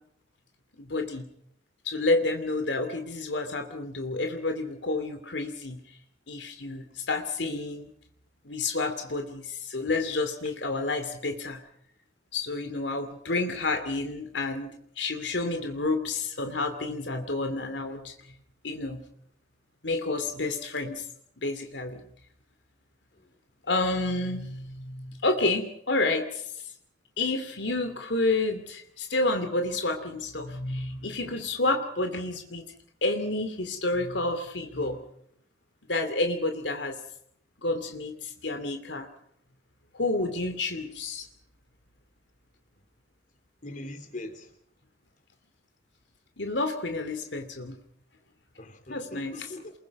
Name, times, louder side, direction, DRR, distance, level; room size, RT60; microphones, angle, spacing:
voice 1, 0.8-1.3 1.8-5.8 6.3-7.9 8.4-11.6 12.3-18.1 18.6-19.1 19.8-21.0 21.4-22.0 23.7-26.4 27.2-32.6 33.0-35.0 35.9-37.0 37.6-39.1 39.9-41.3 46.4-47.8 48.9-49.5, left 2 dB, 85° left, 6 dB, 2.8 m, -29 dB
voice 2, 43.6-44.5 48.6-49.7, left 1 dB, 45° left, 7 dB, 3.6 m, -41 dB
28.0 x 22.5 x 5.4 m, 0.69 s
head